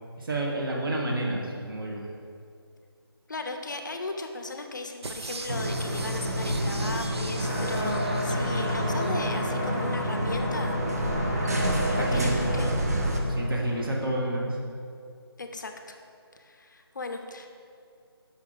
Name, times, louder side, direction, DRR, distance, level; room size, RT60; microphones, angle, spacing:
voice 1, 0.2-2.0 8.3-8.4 12.0-12.6 13.3-14.5, right 1 dB, 55° right, -1 dB, 1.1 m, -29 dB
voice 2, 3.3-10.8 11.9-12.7 15.4-16.0 16.4-17.5, left 3 dB, 50° left, 5 dB, 0.5 m, -36 dB
sound 1, 5.0-9.5 9.9-10.0, right 3 dB, 85° right, 0.5 m, -40 dB
sound 2, 5.5-13.2, equal, 40° right, 0.5 m, -29 dB
sound 3, 7.4-13.8, equal, 15° right, 0.8 m, -32 dB
5.5 x 4.5 x 3.8 m, 2.4 s
figure-of-eight pair, 170°, 14 cm